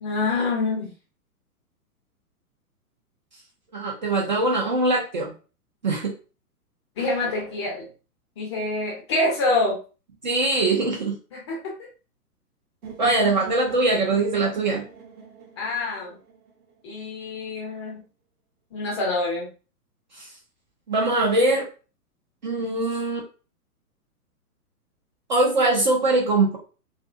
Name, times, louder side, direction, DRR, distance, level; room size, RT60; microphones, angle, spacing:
voice 1, 0.0-0.9 7.0-7.9 8.4-9.8 11.3-11.7 15.6-16.2 16.8-18.0 18.7-19.5, left 2 dB, 20° left, -3 dB, 0.5 m, -26 dB
voice 2, 3.7-5.4 5.8-6.1 10.2-11.2 13.0-14.8 20.2-20.3 20.9-21.7 22.4-23.2 25.3-26.6, right 2 dB, 30° right, -1 dB, 0.5 m, -22 dB
sound 1, 12.8-16.8, right 6 dB, 60° right, 0.9 m, -41 dB
2.5 x 2.5 x 2.4 m, 0.34 s
figure-of-eight pair, 120°, 47 cm